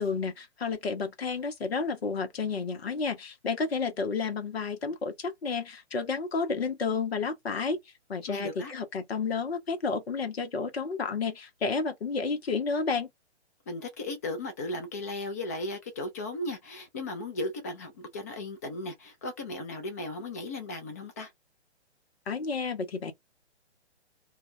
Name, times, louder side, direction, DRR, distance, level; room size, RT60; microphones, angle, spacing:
voice 1, 0.0-7.8 8.1-13.1 22.3-23.1, left 4 dB, 65° left, 0.8 m, -31 dB
voice 2, 8.3-8.7 13.7-21.3, left 2 dB, 15° left, 0.4 m, -36 dB
2.3 x 2.2 x 3.6 m
figure-of-eight pair, 130°, 34 cm